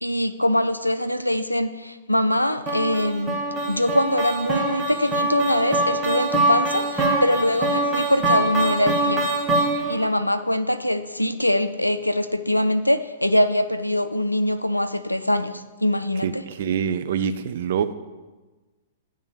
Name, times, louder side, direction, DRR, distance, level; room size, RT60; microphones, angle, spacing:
voice 1, 0.0-9.3 9.9-16.7, left 1 dB, 90° left, 11 dB, 0.4 m, -23 dB
sound 1, 2.7-10.1, right 2 dB, 20° right, 1.2 m, -24 dB
voice 2, 16.2-17.9, right 7 dB, 55° right, 10 dB, 0.4 m, -25 dB
8.9 x 3.4 x 6.6 m, 1.2 s
figure-of-eight pair, 110°, 0 cm